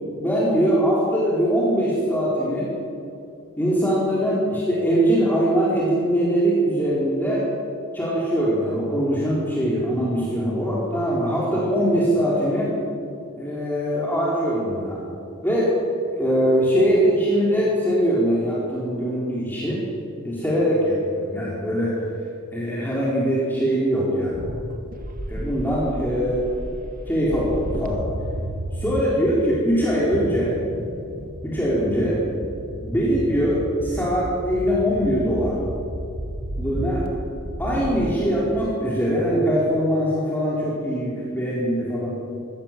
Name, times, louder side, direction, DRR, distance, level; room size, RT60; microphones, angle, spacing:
voice 1, 0.2-2.7 3.6-7.4 7.9-12.7 13.3-15.0 15.4-15.7 16.1-19.8 20.2-21.9 22.5-24.5 25.3-26.6 27.1-28.0 28.7-30.6 31.4-32.2 32.8-35.6 36.6-37.0 37.6-42.1, equal, 10° left, -7 dB, 4.5 m, -22 dB
sound 1, 24.3-38.1, right 1 dB, 40° right, 2.1 m, -33 dB
25.5 x 17.0 x 7.7 m, 2.6 s
head